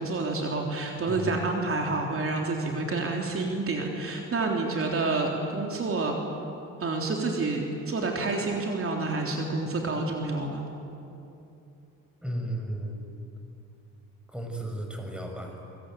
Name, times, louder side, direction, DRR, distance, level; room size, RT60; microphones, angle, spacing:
voice 1, 0.0-6.2 6.8-10.6, right 3 dB, 45° right, 1 dB, 3.7 m, -28 dB
voice 2, 1.1-1.4 12.2-13.1 14.3-15.6, right 1 dB, 5° right, 2 dB, 6.4 m, -34 dB
26.5 x 23.5 x 9.3 m, 2.7 s
cardioid pair, 90°, 30 cm